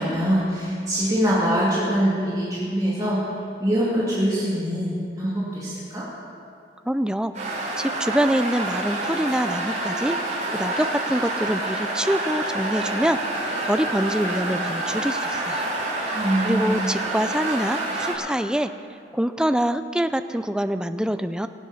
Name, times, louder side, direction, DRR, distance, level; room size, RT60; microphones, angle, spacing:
voice 1, 0.0-3.2 3.6-6.1 16.1-16.8, equal, 20° right, -8 dB, 2.4 m, -23 dB
voice 2, 6.8-15.7 16.0-18.7 19.1-21.5, equal, 5° right, 10 dB, 0.4 m, -25 dB
sound 1, 7.3-18.1, right 2 dB, 45° right, 3.8 m, -28 dB
23.5 x 8.0 x 5.7 m, 2.3 s
head